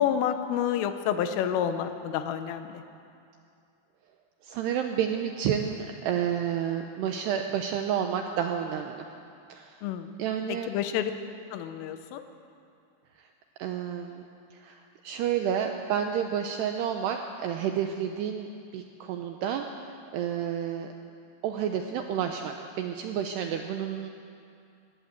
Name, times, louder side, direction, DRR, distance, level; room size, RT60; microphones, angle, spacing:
voice 1, 0.0-2.8 9.8-10.1 10.5-11.1 11.5-12.2, left 9 dB, 85° left, 9 dB, 3.5 m, -29 dB
voice 2, 4.4-9.1 9.5-9.8 10.2-10.7 13.6-14.2 14.6-18.5 18.7-19.7 20.1-20.9 21.4-24.1, right 9 dB, 85° right, 4 dB, 2.4 m, -30 dB
20.0 x 17.0 x 8.1 m, 2.5 s
omnidirectional pair, 5.8 m